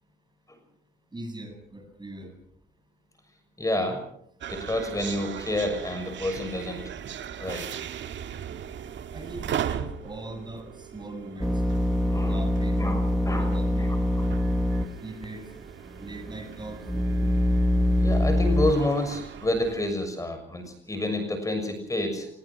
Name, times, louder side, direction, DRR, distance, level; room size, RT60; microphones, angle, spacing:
voice 1, 1.1-2.3 9.1-11.6 12.2-12.8 13.2-13.9 15.0-15.4 16.0-16.8, right 2 dB, 20° right, 5 dB, 7.8 m, -40 dB
voice 2, 3.6-4.0 4.5-6.8 7.4-7.7 12.1-12.4 12.8-13.5 13.8-14.0 18.0-22.3, left 1 dB, 15° left, 6 dB, 6.6 m, -29 dB
sound 1, 4.4-19.9, right 9 dB, 70° right, 1.9 m, -38 dB
sound 2, 11.4-14.9 15.2-15.3 16.0-18.7, left 1 dB, ahead, 1.6 m, -24 dB
25.5 x 21.5 x 6.3 m, 0.68 s
cardioid pair, 90°, 20 cm